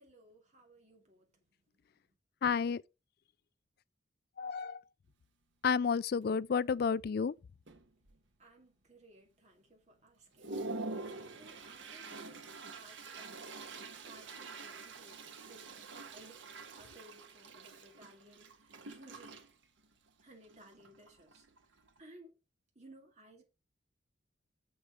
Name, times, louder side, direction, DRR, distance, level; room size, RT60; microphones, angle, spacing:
voice 1, 0.0-1.4 8.0-8.1 8.4-19.4 20.2-21.4 22.0-22.3 22.7-23.4, right 1 dB, 35° right, 2.6 m, -59 dB
voice 2, 2.4-2.8 4.4-4.8 5.6-7.3, left 6 dB, 50° left, 0.3 m, -31 dB
Toilet flush, 5.1-5.2 5.7-5.9 6.2-6.8 7.3-7.4 7.7-8.4 8.9-9.0 9.5-9.6 10.0-22.0, right 3 dB, 70° right, 1.3 m, -47 dB
7.0 x 6.9 x 4.8 m
head